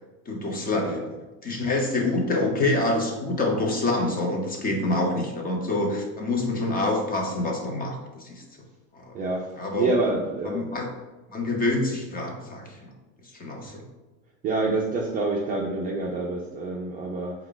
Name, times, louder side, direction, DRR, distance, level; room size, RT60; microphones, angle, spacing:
voice 1, 0.3-1.2 1.4-8.4 8.9-9.2 9.5-9.9 10.4-10.9 11.3-12.9 13.3-13.8, left 2 dB, 20° left, 1 dB, 0.8 m, -26 dB
voice 2, 9.1-9.5 9.8-10.6 13.7-13.8 14.4-17.3, right 3 dB, 25° right, -3 dB, 0.4 m, -27 dB
4.5 x 2.3 x 3.8 m, 1.1 s
supercardioid pair, 125°, 41 cm